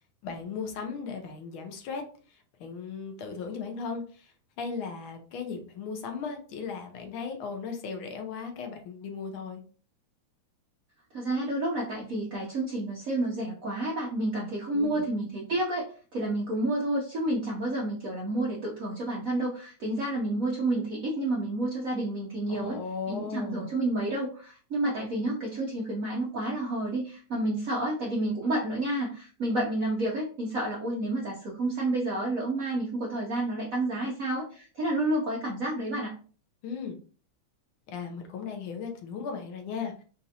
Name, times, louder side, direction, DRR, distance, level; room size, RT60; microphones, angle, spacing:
voice 1, 0.2-9.6 14.7-15.0 22.5-23.7 36.6-37.0 37.9-40.0, left 5 dB, 75° left, 4 dB, 1.5 m, -37 dB
voice 2, 11.1-15.9 16.1-22.8 23.1-36.1, right 1 dB, 70° right, -2 dB, 0.8 m, -30 dB
4.2 x 2.5 x 2.7 m, 0.40 s
omnidirectional pair, 2.4 m